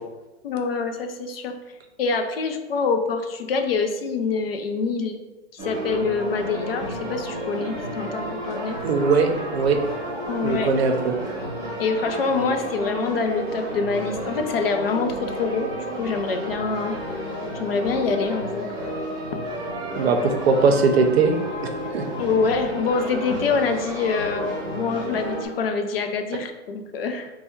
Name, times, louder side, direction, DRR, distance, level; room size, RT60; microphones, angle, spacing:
voice 1, 0.4-1.6 2.0-5.2 5.5-8.8 10.3-10.7 11.8-15.7 16.0-17.0 17.6-18.6 22.2-27.3, left 4 dB, 55° left, 6 dB, 0.5 m, -25 dB
sound 1, 5.6-25.4, equal, 15° right, 0.8 m, -31 dB
voice 2, 8.8-9.8 10.4-11.2 20.0-21.3 21.9-22.0, right 4 dB, 60° right, 5 dB, 0.6 m, -20 dB
3.3 x 2.2 x 4.3 m, 1.1 s
hypercardioid pair, 180°, 35 cm